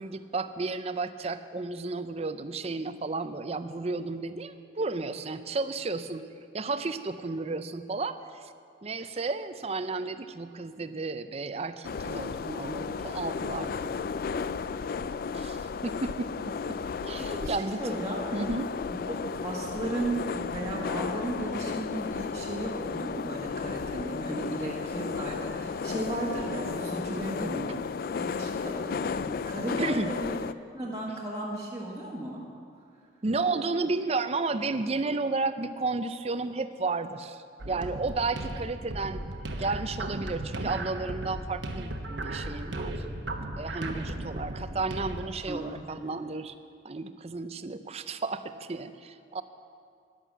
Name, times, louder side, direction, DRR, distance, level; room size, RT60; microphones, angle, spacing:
voice 1, 0.0-6.3 6.5-8.5 8.8-13.9 15.3-16.3 16.9-18.0 18.3-18.8 27.1-27.9 29.8-30.1 33.2-39.2 39.6-43.0 43.6-46.5 46.8-49.4, right 3 dB, 35° right, 11 dB, 0.5 m, -33 dB
sound 1, 11.8-30.5, left 5 dB, 50° left, 0.3 m, -34 dB
voice 2, 17.2-18.2 18.9-27.8 28.1-30.4 30.7-32.4 45.5-45.6 45.9-46.0, right 2 dB, 20° right, -6 dB, 1.4 m, -35 dB
sound 2, 37.6-45.3, right 1 dB, 70° right, 1.1 m, -36 dB
11.0 x 11.0 x 7.3 m, 2.3 s
head